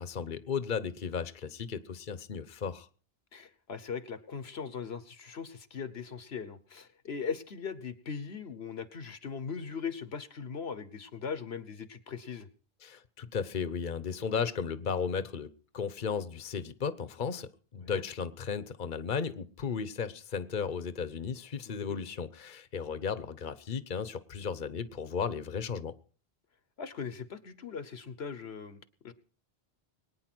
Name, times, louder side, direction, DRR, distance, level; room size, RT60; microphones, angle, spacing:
voice 1, 0.0-2.9 12.8-25.9, left 6 dB, 50° left, 1.1 m, -35 dB
voice 2, 3.3-12.5 17.8-18.0 21.7-22.0 26.8-28.8 29.0-29.1, left 6 dB, 75° left, 1.3 m, -39 dB
22.5 x 9.7 x 6.2 m
omnidirectional pair, 1.1 m